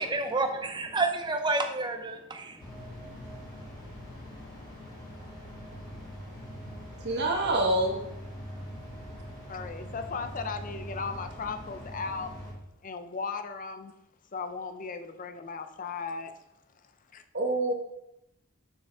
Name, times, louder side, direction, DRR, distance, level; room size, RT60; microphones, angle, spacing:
voice 1, 0.0-2.6, right 3 dB, 20° right, 5 dB, 0.6 m, -29 dB
sound 1, 2.6-12.5, equal, 20° left, 2.2 m, -43 dB
voice 2, 7.0-8.0 17.3-17.7, right 2 dB, 50° right, 2 dB, 1.2 m, -26 dB
voice 3, 9.5-12.3 12.8-13.9 14.3-16.3 17.1-17.2, left 5 dB, 35° left, 8 dB, 0.5 m, -36 dB
6.5 x 6.2 x 3.5 m, 0.85 s
head